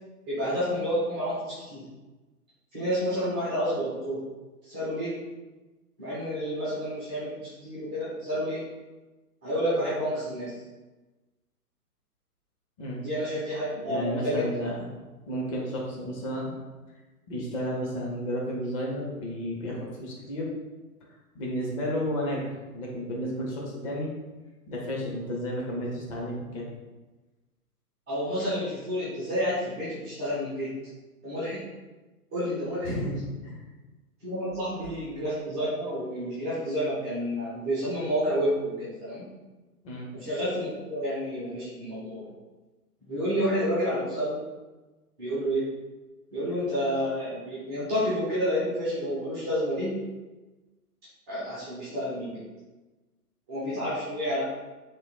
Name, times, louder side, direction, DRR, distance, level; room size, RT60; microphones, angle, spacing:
voice 1, 0.3-1.8 2.7-4.2 4.6-5.1 6.0-8.6 9.4-10.5 12.9-14.6 28.1-30.7 31.2-31.6 32.3-32.9 34.2-39.3 40.1-42.3 43.1-44.4 45.2-45.7 46.3-50.0 51.3-52.4 53.5-54.5, equal, 5° right, -12 dB, 0.4 m, -29 dB
voice 2, 13.8-14.9 15.3-16.6 17.3-20.5 21.3-24.1 24.7-26.6 32.8-33.6 39.8-40.1, equal, 20° left, -3 dB, 0.7 m, -32 dB
3.6 x 3.0 x 4.1 m, 1.2 s
figure-of-eight pair, 120°, 46 cm